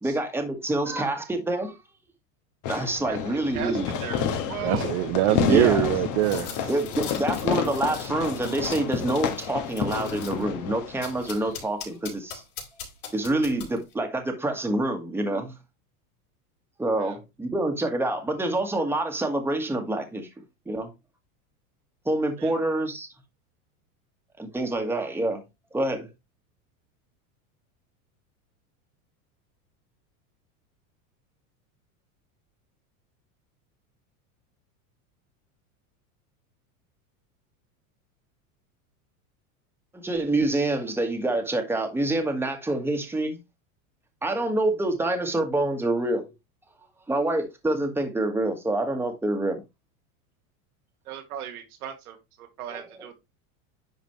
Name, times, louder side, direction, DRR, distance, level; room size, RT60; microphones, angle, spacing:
voice 1, 0.0-1.8 2.7-3.9 5.3-5.9 6.7-12.4 13.1-15.5 16.8-20.3 20.6-20.9 22.0-23.1 24.4-25.4 25.7-26.1 39.9-43.4 44.2-46.3 47.1-49.6 52.7-52.8, right 2 dB, 5° right, 1.6 m, -27 dB
Fireworks, 2.6-11.7, left 8 dB, 45° left, 1.6 m, -30 dB
voice 2, 3.1-5.0 17.0-17.2 22.4-22.5 51.1-53.1, right 9 dB, 85° right, 2.0 m, -38 dB
voice 3, 4.6-6.7, right 16 dB, 55° right, 0.7 m, -23 dB
sound 1, 6.2-10.4 11.0-13.9, left 7 dB, 75° left, 4.4 m, -41 dB
10.5 x 4.1 x 3.1 m
supercardioid pair, 120°, 43 cm